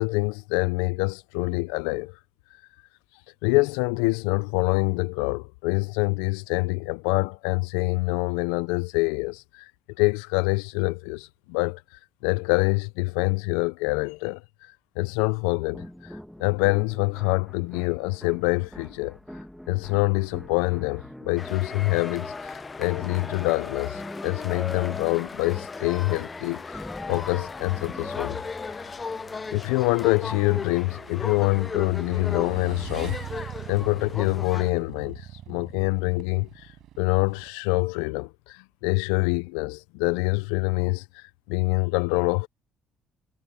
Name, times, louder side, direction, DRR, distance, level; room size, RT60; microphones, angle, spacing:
voice 1, 0.0-2.2 3.4-9.7 10.0-19.2 19.7-28.4 28.7-28.9 29.5-42.5, left 26 dB, 90° left, 0.3 m, -26 dB
sound 1, 15.7-29.4, equal, 5° left, 1.3 m, -44 dB
sound 2, 21.4-34.7, left 4 dB, 30° left, 0.5 m, -36 dB
Motorcycle / Engine, 27.7-37.5, right 13 dB, 70° right, 6.1 m, -43 dB
supercardioid pair, 70°, 0 cm